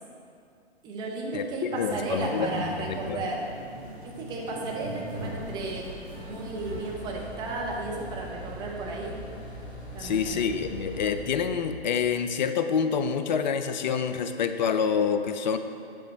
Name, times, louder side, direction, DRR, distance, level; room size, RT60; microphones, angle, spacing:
voice 1, 0.8-3.5 4.0-5.8 6.2-9.1 9.9-10.4, right 2 dB, 15° right, -2 dB, 0.6 m, -34 dB
voice 2, 1.7-3.2 10.0-15.6, left 6 dB, 45° left, 9 dB, 0.4 m, -27 dB
sound 1, 1.7-6.9, right 1 dB, 35° right, 1.3 m, -39 dB
sound 2, 5.1-11.2, equal, 80° left, 1.1 m, -43 dB
sound 3, 6.6-11.6, right 1 dB, 80° right, 1.4 m, -44 dB
8.4 x 3.2 x 5.2 m, 2.4 s
figure-of-eight pair, 125°, 32 cm